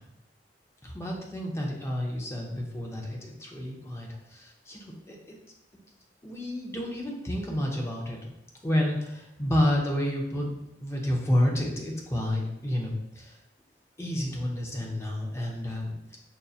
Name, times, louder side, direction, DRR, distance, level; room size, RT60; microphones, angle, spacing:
voice 1, 0.8-5.2 6.2-8.3 8.6-10.5 10.8-13.4 14.0-15.9, left 1 dB, 15° left, -1 dB, 0.5 m, -30 dB
5.4 x 2.6 x 2.3 m, 0.84 s
head